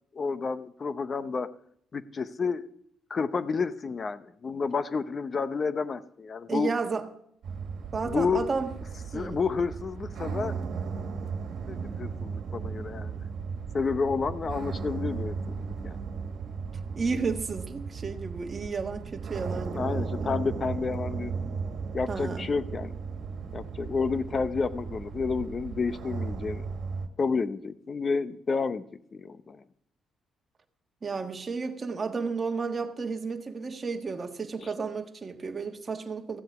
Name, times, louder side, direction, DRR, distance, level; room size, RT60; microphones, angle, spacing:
voice 1, 0.1-1.5 1.9-2.7 3.1-6.7 8.0-8.5 9.1-10.5 11.7-13.2 13.7-16.0 19.7-21.3 21.9-23.0 23.5-26.6 27.2-28.8 29.1-29.6 34.6-34.7, left 5 dB, 40° left, 0.8 m, -30 dB
voice 2, 6.5-7.1 7.9-8.7 9.1-9.4 16.9-20.4 22.1-22.5 31.0-36.4, right 4 dB, 35° right, 1.5 m, -32 dB
sound 1, 7.4-27.1, right 5 dB, 65° right, 1.7 m, -36 dB
15.0 x 7.8 x 6.0 m
cardioid pair, 85°, 0 cm